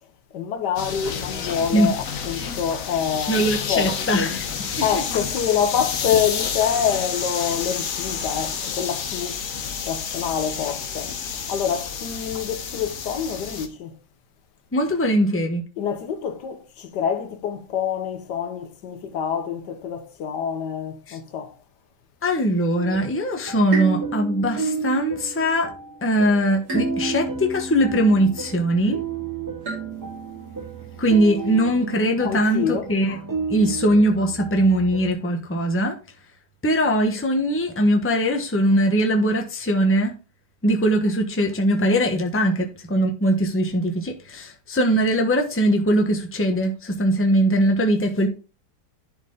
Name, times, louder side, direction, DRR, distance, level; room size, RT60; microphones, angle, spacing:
voice 1, 0.3-4.3 4.8-9.5 9.8-14.0 15.8-21.6 32.2-32.9, left 8 dB, 75° left, 1.4 m, -26 dB
sound 1, 0.8-13.7, left 6 dB, 55° left, 1.2 m, -30 dB
voice 2, 3.3-4.4 14.7-15.6 21.1-21.2 22.2-25.7 26.0-29.0 31.0-33.2 33.5-36.0 36.6-40.1 40.6-48.3, equal, 10° left, 0.9 m, -21 dB
sound 2, 22.7-35.1, right 6 dB, 25° right, 0.4 m, -33 dB
sound 3, 23.7-26.1 26.7-28.7 29.6-31.2, right 2 dB, 60° right, 3.3 m, -33 dB
11.0 x 4.6 x 3.8 m
omnidirectional pair, 1.9 m